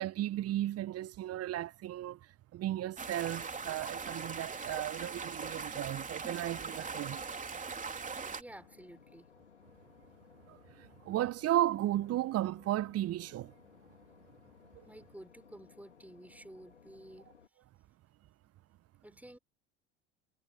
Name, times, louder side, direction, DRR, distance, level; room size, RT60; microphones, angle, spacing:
voice 1, 0.0-2.2 2.5-7.2 10.5-13.5, right 13 dB, 45° right, 1.2 m, -34 dB
sound 1, 3.0-8.4, right 5 dB, 20° right, 3.6 m, -40 dB
voice 2, 8.4-9.3 14.9-17.3 19.0-19.4, right 1 dB, 5° right, 4.6 m, -52 dB
Boat Water vehicle / Engine, 8.5-17.5, left 6 dB, 85° left, 4.0 m, -60 dB
figure-of-eight pair, 65°, 35 cm